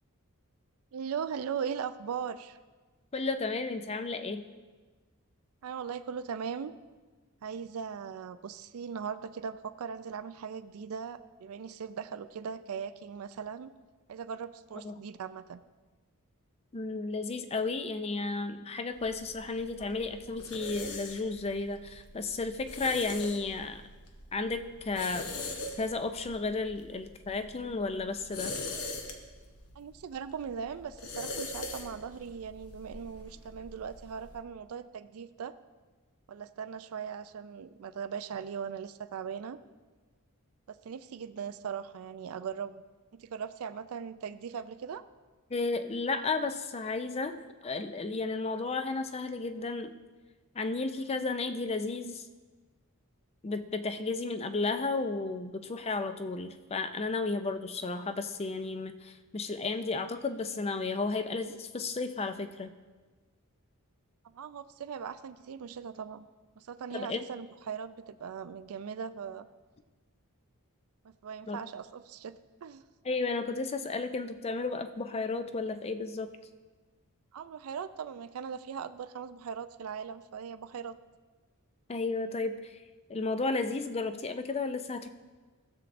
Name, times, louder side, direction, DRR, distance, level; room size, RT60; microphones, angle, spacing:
voice 1, 0.9-2.6 5.6-6.7 7.4-13.7 14.1-15.6 29.8-35.5 36.3-39.6 40.7-42.8 43.1-45.0 64.2-66.3 66.6-69.5 71.0-72.8 77.3-81.0, right 7 dB, 70° right, 13 dB, 0.4 m, -39 dB
voice 2, 3.1-4.4 14.8-15.0 16.7-23.8 24.3-25.4 25.8-28.5 45.5-49.9 50.5-52.2 53.4-62.7 66.9-67.2 71.5-71.6 73.0-76.3 81.9-82.8 83.1-85.1, left 3 dB, 25° left, 9 dB, 0.4 m, -33 dB
sound 1, 18.9-34.4, left 2 dB, 80° left, 1.0 m, -43 dB
15.5 x 7.1 x 2.6 m, 1.3 s
head